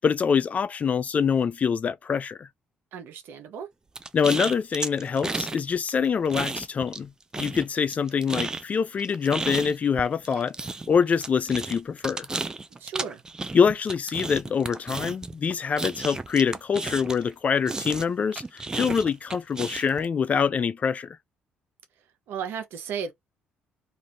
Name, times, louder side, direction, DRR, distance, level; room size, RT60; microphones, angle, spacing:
voice 1, 0.0-2.5 4.1-10.5 10.9-12.3 13.5-21.2, left 6 dB, 40° left, 0.4 m, -25 dB
voice 2, 2.9-3.7 12.8-13.2 22.3-23.1, right 7 dB, 75° right, 0.9 m, -34 dB
sound 1, 3.9-5.6 5.9-7.1 7.3-17.3 17.7-20.0, right 3 dB, 20° right, 0.4 m, -33 dB
2.6 x 2.6 x 3.0 m
cardioid pair, 80°, 4 cm